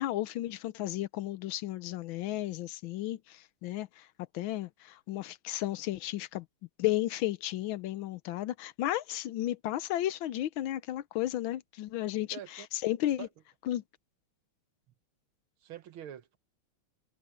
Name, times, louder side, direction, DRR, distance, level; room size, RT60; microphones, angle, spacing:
voice 1, 0.0-4.1 4.3-6.4 6.8-13.3 13.7-13.8, left 14 dB, 75° left, 1.4 m, -33 dB
voice 2, 12.3-12.7 13.2-13.3 15.6-16.4, right 10 dB, 75° right, 1.8 m, -44 dB
omnidirectional pair, 2.3 m